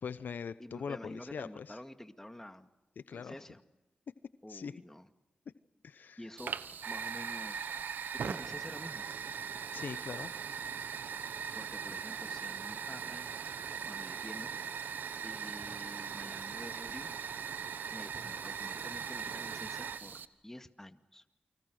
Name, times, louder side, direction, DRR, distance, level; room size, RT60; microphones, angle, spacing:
voice 1, 0.0-1.8 3.0-3.4 4.5-4.7 5.8-6.2 9.7-10.4, left 6 dB, 80° left, 14 dB, 0.8 m, -41 dB
voice 2, 0.6-2.7 3.1-3.6 4.4-5.1 6.2-6.5 6.9-7.7 8.2-9.1 11.6-13.3 13.9-14.6 15.2-17.1 17.9-21.2, left 1 dB, 15° left, 8 dB, 2.1 m, -48 dB
Fire, 6.4-20.3, right 7 dB, 85° right, 1.0 m, -40 dB
sound 1, 11.5-12.1 13.5-13.9 14.2-14.6 15.6-16.1 16.9-17.2 18.1-18.7 19.7-19.9, right 2 dB, 65° right, 6.4 m, -60 dB
29.0 x 25.0 x 6.4 m, 1.0 s
cardioid pair, 40°, 3 cm